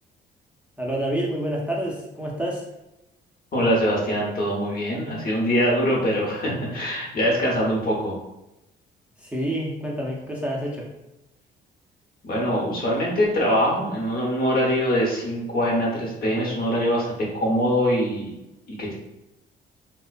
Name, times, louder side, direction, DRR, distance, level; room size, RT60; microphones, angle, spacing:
voice 1, 0.8-2.6 9.2-10.9, right 1 dB, 5° right, -4 dB, 0.4 m, -28 dB
voice 2, 3.5-8.2 12.2-18.3 18.7-18.9, equal, 50° left, -3 dB, 0.9 m, -23 dB
2.4 x 2.1 x 2.4 m, 0.94 s
cardioid pair, 90°, 19 cm